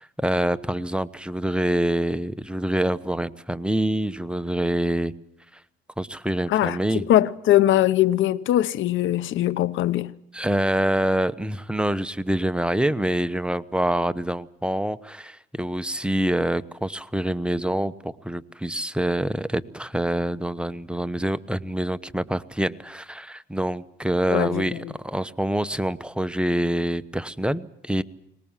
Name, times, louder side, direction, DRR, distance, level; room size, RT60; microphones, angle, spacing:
voice 1, 0.0-5.1 6.0-7.1 10.3-28.0, right 1 dB, 5° right, 1.0 m, -26 dB
voice 2, 6.5-10.1 24.3-24.9, left 13 dB, 80° left, 0.8 m, -21 dB
22.5 x 20.5 x 7.4 m
cardioid pair, 90°, 20 cm